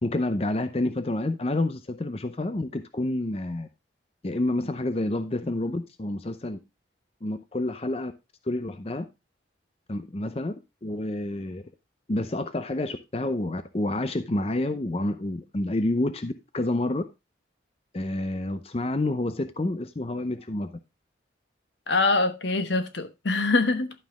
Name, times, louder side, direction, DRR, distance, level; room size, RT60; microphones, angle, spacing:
voice 1, 0.0-3.7 4.2-6.6 7.2-8.1 8.5-9.1 9.9-10.5 10.8-11.6 12.1-17.0 17.9-20.7, left 1 dB, 35° left, 0.6 m, -28 dB
voice 2, 21.9-23.9, left 3 dB, 75° left, 1.2 m, -24 dB
11.5 x 5.7 x 3.5 m
head